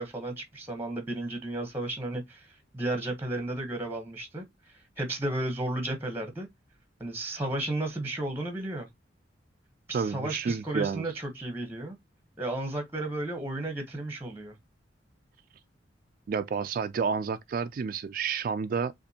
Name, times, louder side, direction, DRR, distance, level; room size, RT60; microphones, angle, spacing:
voice 1, 0.0-2.5 2.7-4.4 5.0-6.5 7.0-8.9 9.9-12.0 12.4-14.6, right 1 dB, 10° right, 0.9 m, -33 dB
voice 2, 9.9-11.1 16.3-18.9, right 5 dB, 50° right, 0.3 m, -30 dB
6.6 x 2.6 x 2.8 m
head